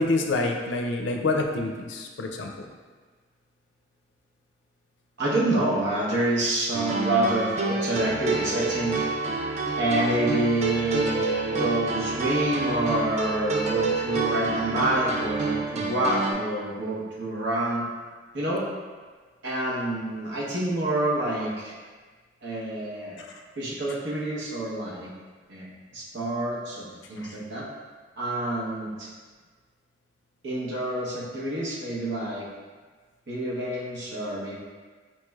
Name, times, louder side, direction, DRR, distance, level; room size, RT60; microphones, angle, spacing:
voice 1, 0.0-2.7, left 2 dB, 80° left, 2 dB, 0.4 m, -27 dB
voice 2, 5.2-9.0 9.8-17.8 18.3-18.7 19.4-21.7 22.4-23.2 23.6-25.1 25.5-25.7 25.9-27.6 28.2-29.1 30.4-32.5 33.3-34.6, right 1 dB, 80° right, -6 dB, 0.9 m, -27 dB
sound 1, 6.7-16.3, right 3 dB, 40° right, 0.4 m, -28 dB
4.3 x 3.1 x 2.3 m, 1.4 s
head